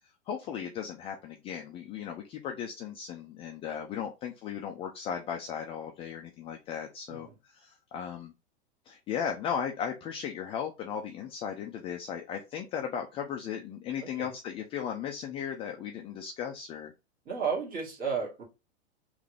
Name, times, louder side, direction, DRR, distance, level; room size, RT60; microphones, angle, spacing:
voice 1, 0.3-8.3 8.9-16.9, left 8 dB, 20° left, 0.3 m, -36 dB
voice 2, 14.0-14.4 17.3-18.4, right 5 dB, 25° right, 1.8 m, -33 dB
3.6 x 2.6 x 3.3 m
hypercardioid pair, 125°, 34 cm